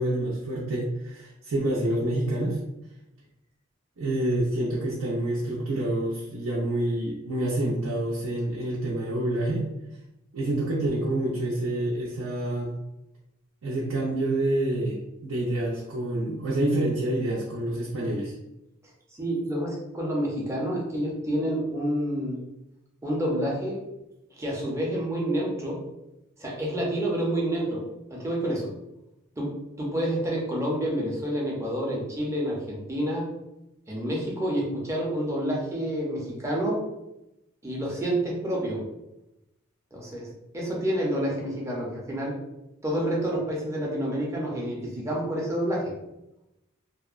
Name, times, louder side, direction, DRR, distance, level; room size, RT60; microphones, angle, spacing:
voice 1, 0.0-2.6 4.0-9.6 10.3-12.8 13.6-18.4, right 1 dB, 85° right, -5 dB, 0.5 m, -27 dB
voice 2, 19.2-22.4 23.0-23.8 24.4-25.8 26.4-27.8 28.1-28.7 29.4-33.3 33.9-36.8 37.6-38.8 39.9-40.3 40.5-42.4 42.8-45.9, right 1 dB, 15° right, -3 dB, 0.6 m, -28 dB
2.8 x 2.0 x 2.4 m, 0.91 s
head